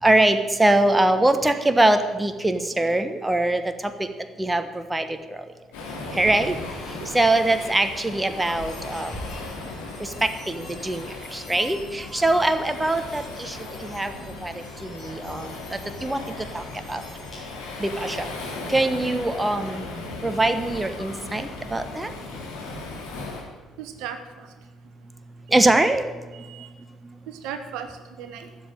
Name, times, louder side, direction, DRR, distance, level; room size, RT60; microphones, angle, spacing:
voice 1, 0.0-4.1 4.4-5.5 6.1-9.2 10.0-14.1 14.4-17.0 17.8-18.3 18.7-19.9 20.2-22.1 25.5-26.1 27.0-27.1, right 2 dB, 15° right, 9 dB, 1.3 m, -23 dB
Waves surf, 5.7-23.4, left 2 dB, 70° left, 3.6 m, -37 dB
sound 1, 8.3-17.8, left 1 dB, 35° left, 5.1 m, -46 dB
voice 2, 23.8-24.5 26.3-26.7 27.3-27.9 28.2-28.5, right 8 dB, 65° right, 7 dB, 1.1 m, -36 dB
13.0 x 7.7 x 9.0 m, 1.3 s
figure-of-eight pair, 50°, 0 cm